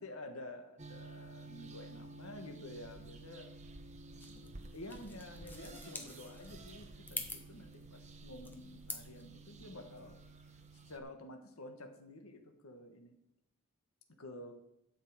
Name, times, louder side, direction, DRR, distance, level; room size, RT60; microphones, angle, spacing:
voice 1, 0.0-3.6 4.2-10.2 10.9-13.1 14.2-14.5, left 1 dB, 90° left, 5 dB, 1.5 m, -50 dB
sound 1, 0.8-11.0, right 3 dB, 30° right, 1.0 m, -52 dB
sound 2, 4.2-9.2, left 3 dB, 10° left, 1.2 m, -47 dB
12.0 x 5.7 x 8.0 m, 0.79 s
head